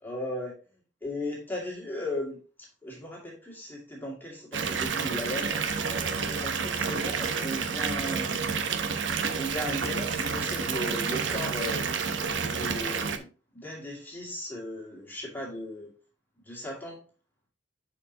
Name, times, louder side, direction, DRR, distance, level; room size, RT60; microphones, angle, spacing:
voice 1, 0.0-0.5 1.0-5.6 6.1-8.4 9.3-11.8 12.4-13.3 13.5-15.9 16.5-17.0, left 1 dB, 10° left, -3 dB, 2.2 m, -36 dB
Water tap faucet / Bathtub (filling or washing) / Fill (with liquid), 4.5-13.2, right 5 dB, 80° right, 0.9 m, -29 dB
10.5 x 4.7 x 2.8 m, 0.35 s
head